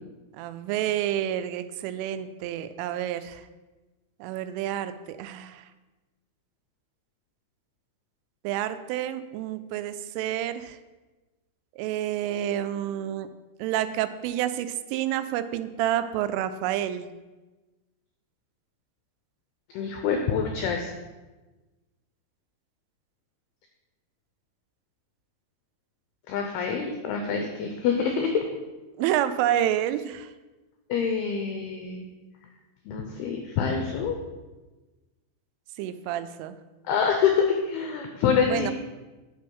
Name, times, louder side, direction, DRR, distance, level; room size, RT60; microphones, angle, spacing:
voice 1, 0.4-3.4 4.2-5.6 8.4-10.8 11.8-13.3 13.6-17.1 29.0-30.3 35.8-36.6 38.5-38.7, right 11 dB, 90° right, 12 dB, 3.2 m, -29 dB
voice 2, 19.7-20.9 26.3-28.4 30.9-32.1 32.9-34.2 36.9-38.7, left 6 dB, 85° left, 4 dB, 2.2 m, -26 dB
10.0 x 6.6 x 5.4 m, 1.2 s
omnidirectional pair, 5.6 m